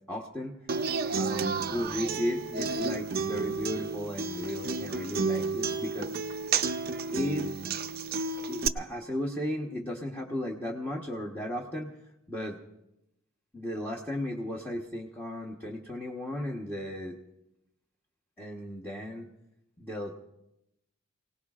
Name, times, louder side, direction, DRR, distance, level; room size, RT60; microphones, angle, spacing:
voice 1, 0.1-0.6 1.2-6.1 7.1-7.5 8.5-11.9 12.3-12.6 13.5-17.2 18.4-19.3 19.8-20.1, left 1 dB, 10° left, -2 dB, 1.1 m, -35 dB
Human voice / Acoustic guitar, 0.7-8.7, right 4 dB, 45° right, 0.5 m, -31 dB
28.5 x 18.0 x 2.4 m, 0.87 s
head